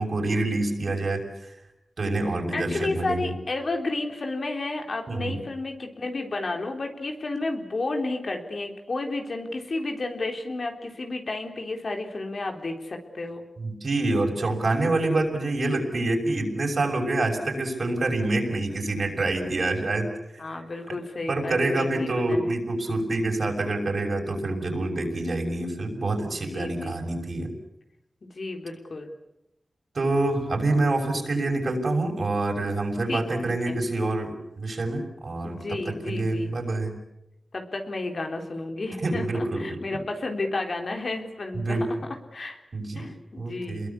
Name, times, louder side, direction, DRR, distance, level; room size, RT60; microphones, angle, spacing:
voice 1, 0.0-1.5 2.0-3.3 5.1-5.4 13.6-20.4 21.3-27.5 29.9-37.0 39.0-39.8 41.5-41.9 42.7-43.1 43.4-43.9, right 2 dB, 65° right, 3 dB, 6.3 m, -26 dB
voice 2, 2.5-13.4 20.4-22.6 26.2-27.0 28.3-29.1 33.1-33.2 33.7-33.8 35.4-36.5 37.5-41.9 42.3-42.6 43.0-43.9, left 2 dB, 60° left, 3 dB, 3.9 m, -32 dB
28.5 x 22.0 x 8.4 m, 0.88 s
wide cardioid pair, 80°, 0 cm